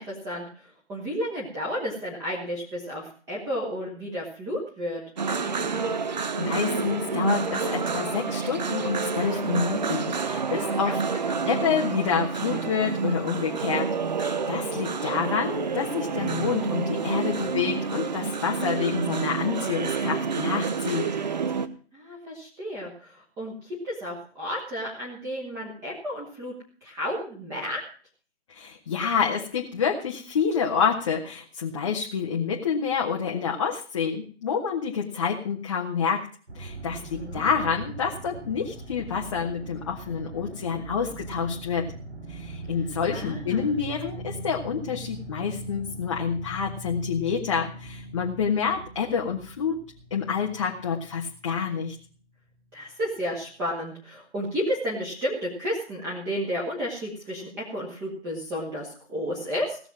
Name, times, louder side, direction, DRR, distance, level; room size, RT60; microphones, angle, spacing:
voice 1, 0.0-5.0 10.6-11.5 21.9-26.5 26.8-27.8 36.9-37.5 43.1-43.8 52.7-59.8, equal, 10° right, -4 dB, 1.8 m, -32 dB
sound 1, 5.2-21.7, right 5 dB, 40° right, 1.0 m, -28 dB
voice 2, 5.9-11.0 11.4-21.1 28.5-36.3 36.5-41.9 42.3-49.8 50.1-52.0, left 6 dB, 25° left, -1 dB, 1.4 m, -28 dB
sound 2, 36.5-52.1 52.6-52.7, right 2 dB, 75° right, 6.4 m, -41 dB
17.5 x 6.9 x 7.5 m, 0.42 s
figure-of-eight pair, 150°, 34 cm